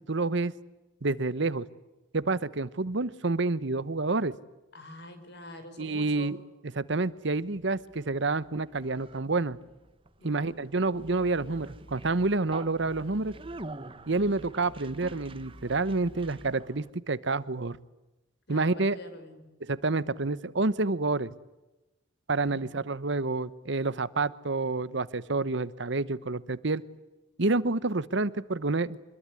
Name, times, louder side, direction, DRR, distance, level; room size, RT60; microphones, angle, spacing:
voice 1, 0.1-0.5 1.0-1.6 2.1-4.4 5.8-6.4 6.7-9.6 10.2-13.3 14.1-17.8 18.5-19.0 19.6-21.3 22.3-26.8 27.4-29.0, right 3 dB, 60° right, 17 dB, 1.0 m, -28 dB
voice 2, 4.7-6.3 10.2-10.6 18.5-19.5 22.5-22.8, left 1 dB, 55° left, 9 dB, 5.5 m, -46 dB
Conversation, 7.4-16.9, right 2 dB, 25° right, 1.1 m, -46 dB
26.5 x 21.5 x 9.7 m, 1.0 s
head